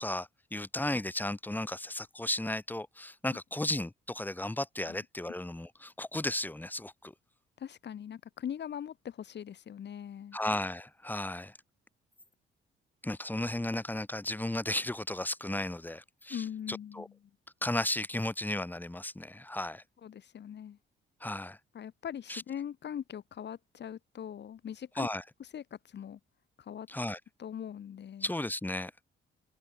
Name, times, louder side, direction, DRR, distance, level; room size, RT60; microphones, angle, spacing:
voice 1, 0.0-7.1 10.3-11.5 13.0-17.1 17.6-19.8 21.2-21.6 22.3-22.4 25.0-25.2 26.9-27.2 28.2-28.9, left 1 dB, 10° left, 2.4 m, -34 dB
voice 2, 7.6-10.4 16.3-17.1 20.0-20.8 21.7-25.1 25.4-26.2 26.6-26.9 27.4-28.3, left 9 dB, 60° left, 7.2 m, -41 dB
cardioid pair, 90°, 20 cm